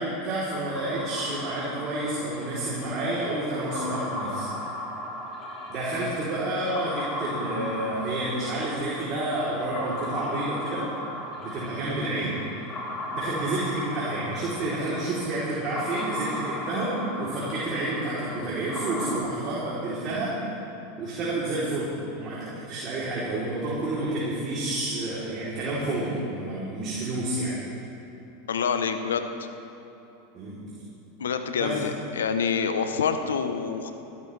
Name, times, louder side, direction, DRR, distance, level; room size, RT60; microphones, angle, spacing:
voice 1, 0.0-4.5 5.7-10.9 11.4-12.4 13.1-20.4 21.0-27.5 30.3-30.6 31.6-31.8, right 2 dB, 40° right, -8 dB, 3.5 m, -29 dB
sound 1, 0.7-19.2, left 1 dB, 30° left, 3.4 m, -36 dB
voice 2, 28.5-29.5 31.2-33.9, left 6 dB, 90° left, 8 dB, 0.9 m, -27 dB
21.0 x 12.5 x 3.4 m, 3.0 s
hypercardioid pair, 105°, 0 cm